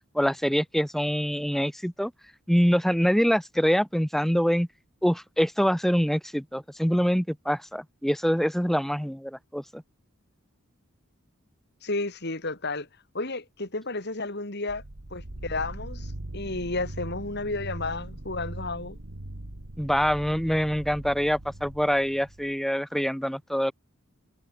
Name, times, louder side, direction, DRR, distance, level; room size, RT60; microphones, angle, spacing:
voice 1, 0.1-2.1 2.5-4.7 5.0-9.8 19.8-23.7, equal, ahead, 2.9 m, -25 dB
voice 2, 11.8-12.9 13.1-14.8 15.1-19.0, left 2 dB, 55° left, 3.7 m, -32 dB
sound 1, 14.7-22.5, right 1 dB, 80° right, 2.1 m, -40 dB
head